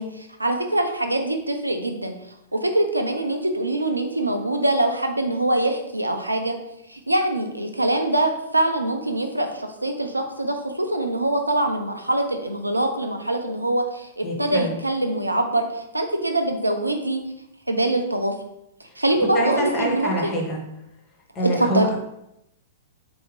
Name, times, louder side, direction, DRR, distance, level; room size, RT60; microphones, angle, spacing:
voice 1, 0.0-2.1 2.5-6.6 6.9-17.2 17.7-18.3 19.0-20.4 21.4-21.9, right 1 dB, 85° right, 5 dB, 0.5 m, -24 dB
voice 2, 14.2-14.8 19.3-20.6 21.3-22.0, equal, 30° left, -1 dB, 1.1 m, -25 dB
3.8 x 2.6 x 3.4 m, 0.82 s
figure-of-eight pair, 105°, 0 cm